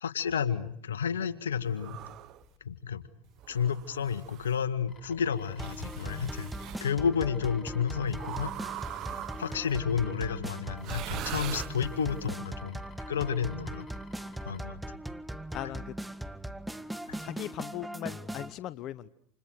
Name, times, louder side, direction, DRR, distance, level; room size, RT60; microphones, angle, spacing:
voice 1, 0.0-2.0 2.6-3.1 3.5-6.5 6.8-8.5 9.4-12.8 13.1-13.9 14.5-14.8 17.1-17.2, left 7 dB, 85° left, 14 dB, 1.7 m, -31 dB
sound 1, 1.8-2.4 3.4-4.6 5.6-6.8 8.2-9.7 10.8-12.2, right 13 dB, 50° right, 1.3 m, -41 dB
sound 2, 4.9-14.6, left 5 dB, 35° left, 5.5 m, -54 dB
sound 3, 5.6-18.5, right 1 dB, 5° right, 1.7 m, -40 dB
voice 2, 15.5-15.9 17.2-19.1, left 13 dB, 50° left, 15 dB, 1.1 m, -38 dB
29.5 x 28.0 x 6.6 m, 0.67 s
hypercardioid pair, 85°, 0 cm